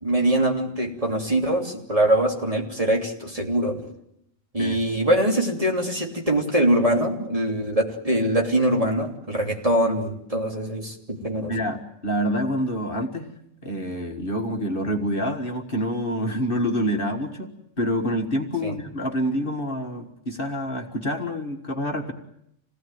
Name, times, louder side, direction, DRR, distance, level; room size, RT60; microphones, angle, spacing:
voice 1, 0.0-3.8 4.5-11.5 18.6-18.7, right 1 dB, 25° right, 1 dB, 3.2 m, -23 dB
voice 2, 11.5-13.3 13.6-22.1, equal, 40° left, 3 dB, 1.9 m, -27 dB
27.5 x 18.5 x 9.3 m, 0.77 s
omnidirectional pair, 1.4 m